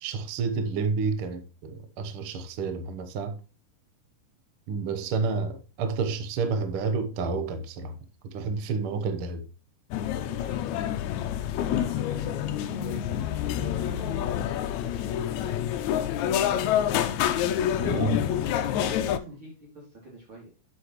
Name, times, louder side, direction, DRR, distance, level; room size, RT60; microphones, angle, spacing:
voice 1, 0.0-3.4 4.7-8.0 8.3-9.4 17.8-18.2, right 4 dB, 65° right, 1.3 m, -30 dB
sound 1, 9.9-19.2, left 10 dB, 75° left, 1.8 m, -27 dB
voice 2, 10.0-10.8 11.2-14.2 14.5-15.0 15.3-16.8 17.2-20.5, right 2 dB, 40° right, 3.8 m, -47 dB
8.3 x 7.7 x 3.1 m
omnidirectional pair, 3.9 m